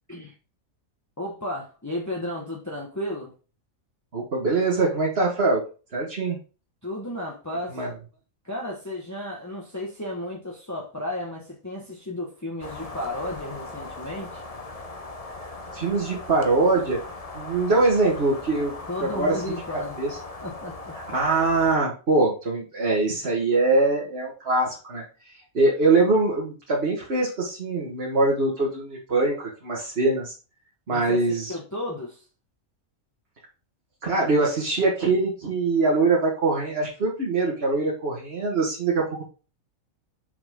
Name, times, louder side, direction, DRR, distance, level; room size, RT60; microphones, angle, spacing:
voice 1, 1.2-3.3 6.8-7.8 8.4-14.4 18.9-20.0 20.4-21.0 30.9-32.2, left 1 dB, 15° left, -2 dB, 1.4 m, -33 dB
voice 2, 4.1-5.6 5.9-6.4 7.7-7.9 15.7-17.0 17.3-18.7 19.0-19.6 20.0-20.2 21.1-25.0 25.5-30.3 30.9-31.5 34.0-39.2, right 3 dB, 45° right, -3 dB, 1.8 m, -23 dB
sound 1, 12.6-21.8, left 2 dB, 30° left, 1.0 m, -39 dB
7.1 x 5.9 x 3.7 m, 0.35 s
omnidirectional pair, 1.4 m